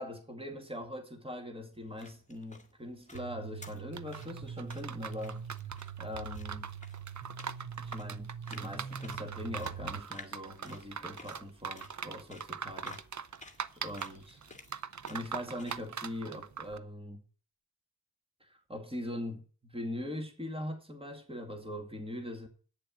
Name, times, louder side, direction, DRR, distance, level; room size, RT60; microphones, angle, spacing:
voice 1, 0.0-5.4 6.0-6.7 7.8-13.0 13.8-14.4 15.1-17.2 18.4-22.5, left 1 dB, 10° right, 2.2 m, -41 dB
sound 1, 1.7-15.9, left 2 dB, 15° left, 1.7 m, -55 dB
sound 2, 3.1-10.0, right 7 dB, 75° right, 2.1 m, -43 dB
sound 3, 3.9-16.8, right 6 dB, 40° right, 0.6 m, -42 dB
9.1 x 7.0 x 8.7 m
wide cardioid pair, 90°, 48 cm